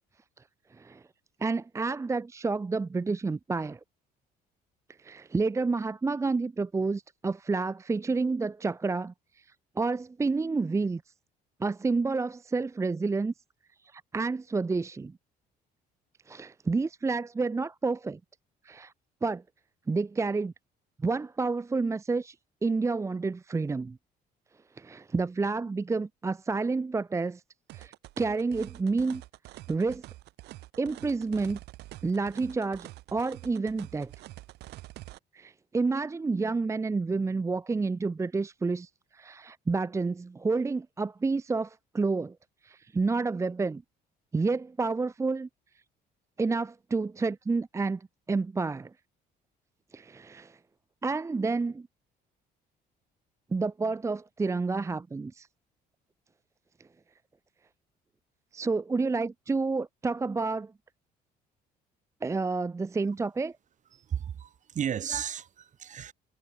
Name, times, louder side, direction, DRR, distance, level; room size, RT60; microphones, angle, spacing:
voice 1, 1.4-3.8 5.0-9.1 9.8-11.0 11.6-13.3 13.9-15.1 16.3-18.2 18.6-18.9 19.2-19.4 19.9-20.5 21.0-22.3 22.6-24.0 24.8-27.4 27.7-29.2 29.7-30.0 30.8-31.6 32.0-34.1 35.3-42.4 42.6-43.8 44.3-45.5 46.4-48.9 49.9-50.6 51.0-51.9 53.5-55.5 58.5-60.7 62.2-63.5, right 4 dB, 15° right, 0.6 m, -29 dB
sound 1, 27.7-35.2, right 18 dB, 80° right, 1.1 m, -47 dB
voice 2, 63.9-66.1, right 9 dB, 45° right, 2.6 m, -34 dB
cardioid pair, 110°, 17 cm